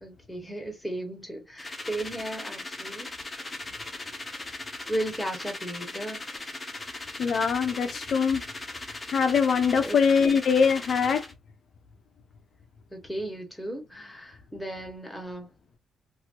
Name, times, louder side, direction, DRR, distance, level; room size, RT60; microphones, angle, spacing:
voice 1, 0.0-3.1 3.8-4.2 4.9-6.3 9.8-10.0 12.9-15.5, right 1 dB, 5° left, 1.2 m, -35 dB
sound 1, 1.6-11.3, left 2 dB, 20° left, 0.9 m, -38 dB
voice 2, 7.2-8.4 9.1-11.3, left 6 dB, 60° left, 0.6 m, -23 dB
2.8 x 2.6 x 2.8 m
cardioid pair, 90°, 0 cm